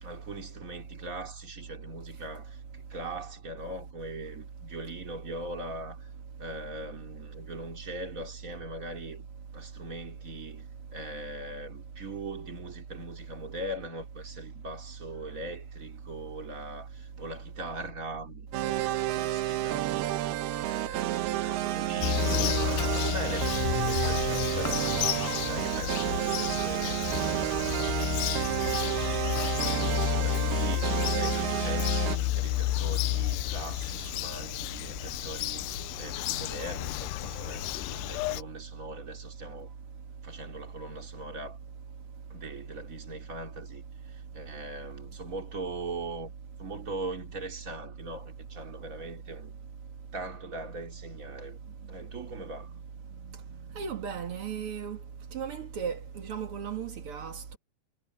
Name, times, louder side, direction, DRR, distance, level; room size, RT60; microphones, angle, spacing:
voice 1, 0.0-6.1 6.4-9.3 9.5-19.9 20.7-28.8 29.7-39.7 40.2-41.6 42.3-46.3 46.6-49.6 50.1-51.6 51.9-52.7, right 2 dB, 25° right, 2.4 m, -41 dB
sound 1, 18.5-32.2, right 15 dB, 70° right, 2.7 m, -30 dB
Bird vocalization bird call bird song, 22.0-38.4, left 17 dB, 85° left, 2.4 m, -31 dB
voice 2, 53.7-55.0 55.3-57.6, right 7 dB, 90° right, 1.2 m, -36 dB
omnidirectional pair, 5.2 m